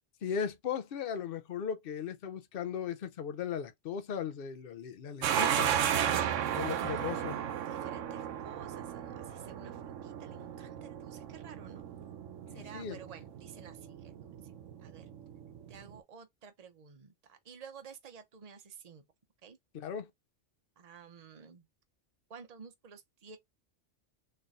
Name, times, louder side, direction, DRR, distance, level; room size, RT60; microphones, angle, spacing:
voice 1, 0.2-5.7 6.5-7.4 12.7-13.0 19.7-20.1, left 7 dB, 55° left, 0.8 m, -37 dB
sound 1, 5.2-16.0, right 9 dB, 90° right, 1.0 m, -35 dB
voice 2, 6.7-11.8 12.5-14.5 14.8-15.1 15.7-19.0 19.4-19.6 20.8-21.7 22.3-23.4, right 6 dB, 35° right, 0.8 m, -52 dB
3.8 x 3.3 x 4.0 m
omnidirectional pair, 1.3 m